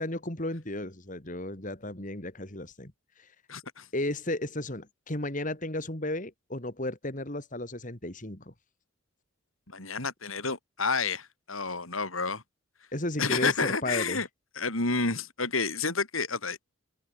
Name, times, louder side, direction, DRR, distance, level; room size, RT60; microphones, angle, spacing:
voice 1, 0.0-3.3 3.9-8.5 12.9-14.2, left 1 dB, 40° left, 3.2 m, -34 dB
voice 2, 3.5-3.9 9.7-12.4 13.2-14.3 14.6-16.6, left 4 dB, 80° left, 7.1 m, -30 dB
head